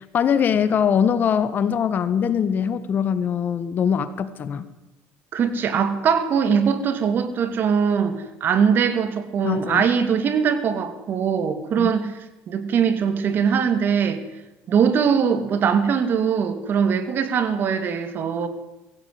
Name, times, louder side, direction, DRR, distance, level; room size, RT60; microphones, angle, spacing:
voice 1, 0.1-4.7 9.4-9.8 11.8-11.9, left 7 dB, 40° left, 13 dB, 1.7 m, -22 dB
voice 2, 5.3-12.1 12.5-14.2 14.7-18.5, right 7 dB, 45° right, 10 dB, 2.8 m, -21 dB
21.5 x 16.5 x 9.6 m, 0.99 s
cardioid pair, 125°, 5 cm